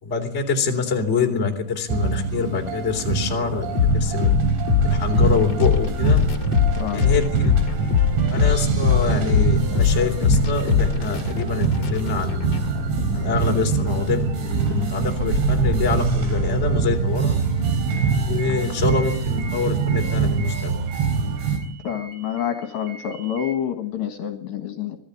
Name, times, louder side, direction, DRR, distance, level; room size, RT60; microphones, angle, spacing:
voice 1, 0.0-4.3 4.8-6.2 6.9-7.5 7.8-7.9 8.3-12.5 13.1-17.4 18.3-20.8, left 4 dB, 15° left, 2 dB, 2.8 m, -25 dB
sound 1, 1.9-21.6, right 5 dB, 70° right, 6.3 m, -24 dB
sound 2, 3.7-13.4, left 7 dB, 40° left, 2.7 m, -22 dB
voice 2, 6.8-7.1 21.8-25.0, left 9 dB, 70° left, 5 dB, 3.4 m, -28 dB
sound 3, 17.6-23.5, right 3 dB, 85° right, 5.6 m, -41 dB
25.5 x 18.0 x 8.5 m, 0.66 s
omnidirectional pair, 5.8 m